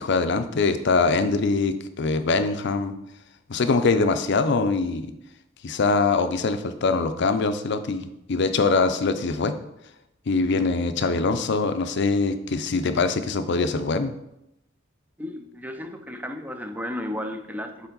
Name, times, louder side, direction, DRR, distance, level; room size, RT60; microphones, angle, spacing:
voice 1, 0.0-2.9 3.5-5.1 5.6-9.5 10.3-14.1, left 4 dB, 60° left, 9 dB, 0.5 m, -23 dB
voice 2, 15.2-17.9, left 1 dB, 10° right, 6 dB, 0.5 m, -33 dB
7.0 x 4.4 x 3.9 m, 0.82 s
head